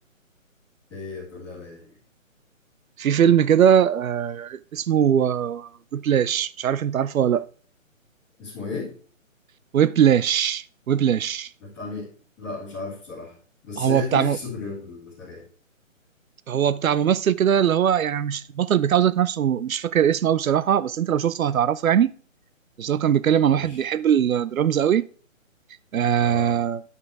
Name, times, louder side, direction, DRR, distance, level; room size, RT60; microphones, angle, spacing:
voice 1, 0.9-2.0 8.4-8.9 11.6-12.1 12.4-13.3 13.6-15.4 23.5-23.8 26.2-26.6, left 4 dB, ahead, 1.8 m, -34 dB
voice 2, 3.0-7.4 9.7-11.5 13.8-14.4 16.5-22.1 22.8-25.1 25.9-26.8, right 9 dB, 85° right, 0.6 m, -21 dB
10.5 x 5.6 x 4.7 m
hypercardioid pair, 180°, 41 cm